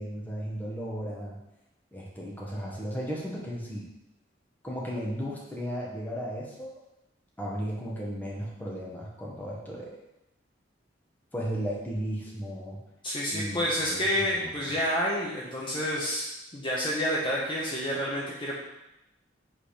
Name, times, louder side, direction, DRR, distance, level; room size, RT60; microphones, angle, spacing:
voice 1, 0.0-1.4 1.9-3.8 4.6-6.7 7.4-10.0 11.3-12.8 13.3-13.6 13.9-14.7, equal, 10° left, -4 dB, 1.7 m, -35 dB
voice 2, 13.0-16.3 16.5-18.6, equal, 30° left, -6 dB, 1.4 m, -29 dB
7.9 x 4.2 x 5.1 m, 0.89 s
head